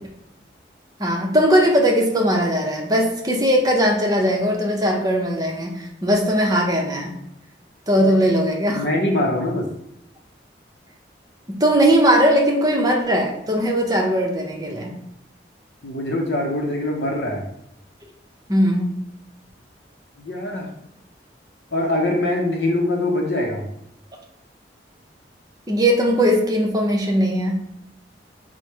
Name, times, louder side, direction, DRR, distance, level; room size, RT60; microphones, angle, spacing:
voice 1, 1.0-7.1 7.9-8.8 11.5-14.9 18.5-18.9 25.7-27.6, equal, 20° right, 0 dB, 0.7 m, -19 dB
voice 2, 8.7-9.7 15.8-17.4 20.2-20.7 21.7-23.6, left 1 dB, 65° left, 0 dB, 0.6 m, -23 dB
4.5 x 2.1 x 4.6 m, 0.78 s
head